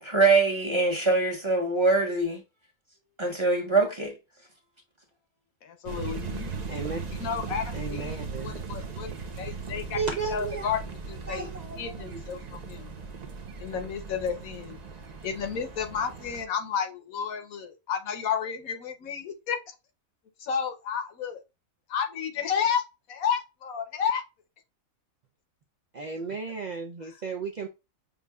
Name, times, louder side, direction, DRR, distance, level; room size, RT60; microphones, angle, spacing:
voice 1, 0.0-2.4 3.2-4.1, right 3 dB, 25° right, 1.0 m, -23 dB
voice 2, 5.6-6.5 7.2-9.1 9.4-10.0 10.3-11.5 11.8-12.9 13.6-14.8 15.2-19.7 20.4-21.4 21.9-22.8 23.1-24.2 27.0-27.2, left 7 dB, 80° left, 1.2 m, -31 dB
sound 1, 5.9-16.4, right 4 dB, 40° right, 0.6 m, -38 dB
voice 3, 6.7-7.0 7.7-8.6 9.9-10.7 11.3-12.2 25.9-27.7, right 4 dB, 85° right, 0.3 m, -34 dB
6.7 x 2.6 x 2.2 m
omnidirectional pair, 1.5 m